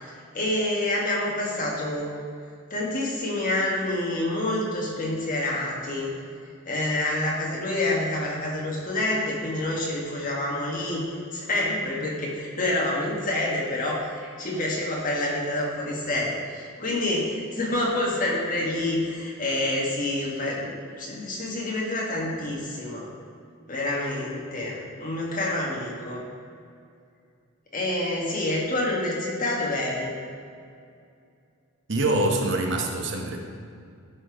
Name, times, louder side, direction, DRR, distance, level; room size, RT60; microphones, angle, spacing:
voice 1, 0.3-2.1 2.7-6.1 6.7-11.0 11.3-23.1 23.7-26.2 27.7-30.1, left 1 dB, 40° left, -3 dB, 1.7 m, -27 dB
voice 2, 31.9-33.4, right 2 dB, 55° right, 3 dB, 0.9 m, -25 dB
11.5 x 4.4 x 4.9 m, 2.4 s
head